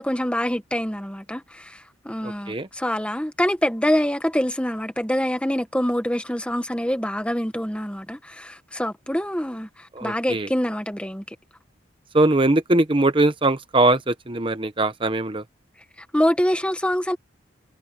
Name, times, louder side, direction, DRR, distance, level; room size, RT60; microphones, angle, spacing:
voice 1, 0.0-1.7 2.0-9.7 10.0-11.2 16.1-17.2, equal, 5° left, 1.5 m, -25 dB
voice 2, 2.2-2.7 9.9-10.5 12.1-15.4, right 2 dB, 25° right, 0.9 m, -21 dB
head